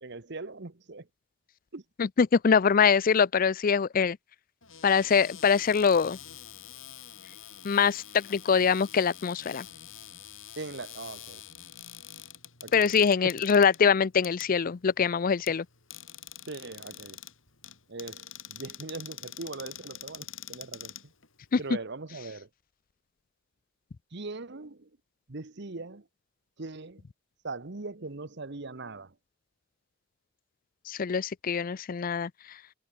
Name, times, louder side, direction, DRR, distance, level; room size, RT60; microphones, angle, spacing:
voice 1, 0.0-1.1 1.7-1.8 10.6-11.4 12.6-12.9 13.2-13.3 16.5-17.2 17.9-18.2 18.5-21.1 21.6-22.5 24.1-24.9 25.3-26.0 26.6-27.0 27.4-29.1, right 3 dB, 60° right, 1.2 m, -40 dB
voice 2, 2.0-4.2 4.8-6.2 7.6-9.7 12.7-15.7 21.5-21.6 30.9-32.6, left 6 dB, 45° left, 0.4 m, -24 dB
Cupboard open or close, 4.6-21.7, left 11 dB, 80° left, 7.3 m, -46 dB
head